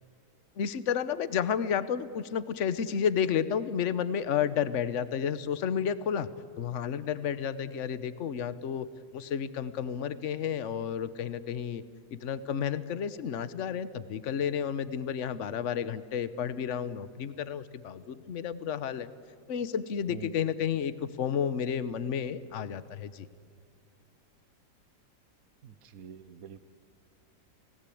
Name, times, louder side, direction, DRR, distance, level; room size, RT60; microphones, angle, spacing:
voice 1, 0.6-6.3 6.6-8.9 9.1-11.8 12.1-19.1 19.5-23.3, left 8 dB, 50° left, 14 dB, 1.2 m, -31 dB
voice 2, 25.6-26.6, right 7 dB, 60° right, 13 dB, 1.4 m, -45 dB
29.5 x 18.0 x 8.6 m, 2.3 s
omnidirectional pair, 1.8 m